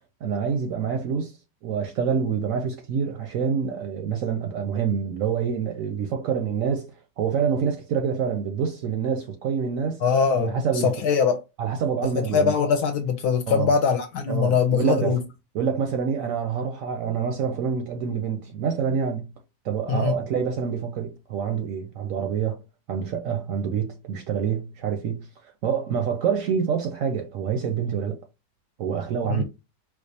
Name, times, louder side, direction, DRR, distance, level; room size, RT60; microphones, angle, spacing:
voice 1, 0.2-6.9 7.2-10.0 10.4-11.1 11.6-12.5 13.5-13.7 14.3-15.2 15.5-19.3 19.6-22.6 22.9-28.2 28.8-29.4, right 7 dB, 70° right, 0.8 m, -26 dB
voice 2, 10.0-10.5 10.8-11.4 12.1-15.2 19.9-20.1 29.3-29.4, left 6 dB, 75° left, 1.1 m, -22 dB
4.5 x 2.3 x 2.7 m
omnidirectional pair, 1.8 m